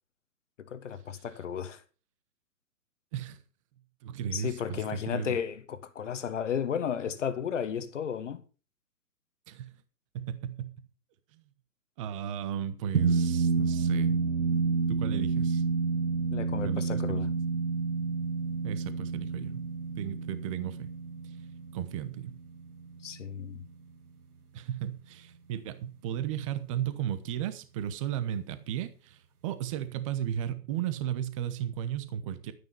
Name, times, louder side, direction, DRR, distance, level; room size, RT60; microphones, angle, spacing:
voice 1, 0.6-1.8 4.3-8.4 16.3-17.3 23.0-23.6, left 8 dB, 50° left, 1.5 m, -33 dB
voice 2, 4.0-5.4 9.5-9.7 10.1-10.7 11.3-11.4 12.0-14.2 14.9-15.6 16.6-17.2 18.6-19.6 20.0-20.9 21.7-22.3 24.5-32.5, right 10 dB, 20° right, 1.0 m, -35 dB
sound 1, 12.9-23.6, right 5 dB, 65° right, 2.2 m, -29 dB
12.5 x 9.4 x 5.5 m
figure-of-eight pair, 140°, 49 cm